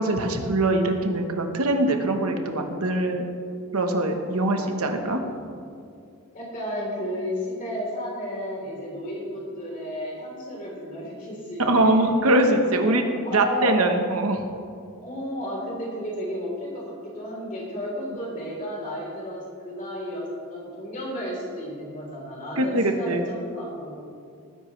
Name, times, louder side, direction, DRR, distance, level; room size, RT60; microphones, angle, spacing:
voice 1, 0.0-3.2 3.7-5.2 11.6-13.0 13.3-14.4 22.6-23.2, right 1 dB, 75° right, 5 dB, 1.2 m, -22 dB
voice 2, 4.5-5.5 6.3-12.1 12.8-13.0 13.2-13.8 15.0-23.9, equal, 35° left, -4 dB, 3.7 m, -33 dB
18.5 x 10.5 x 3.3 m, 2.3 s
head